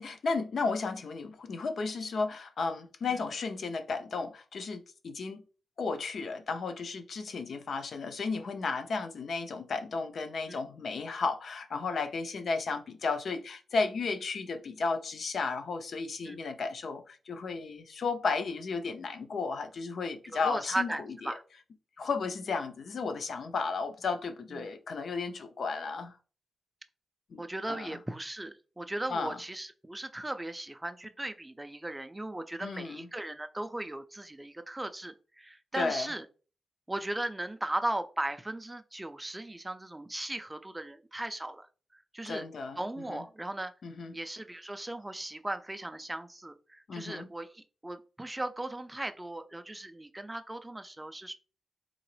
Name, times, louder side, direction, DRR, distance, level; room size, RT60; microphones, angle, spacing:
voice 1, 0.0-5.4 5.8-20.9 22.0-26.2 27.3-27.4 27.7-28.0 29.1-29.4 32.6-33.1 35.7-36.1 42.2-42.8 43.1-43.2 43.8-44.1 46.9-47.3, left 4 dB, 60° left, 0.5 m, -34 dB
voice 2, 20.2-21.4 24.6-24.7 27.4-36.3 36.9-41.7 41.9-42.5 42.8-43.7 44.1-51.3, right 1 dB, 10° right, 0.3 m, -37 dB
3.8 x 2.9 x 3.2 m
wide cardioid pair, 130°, 0 cm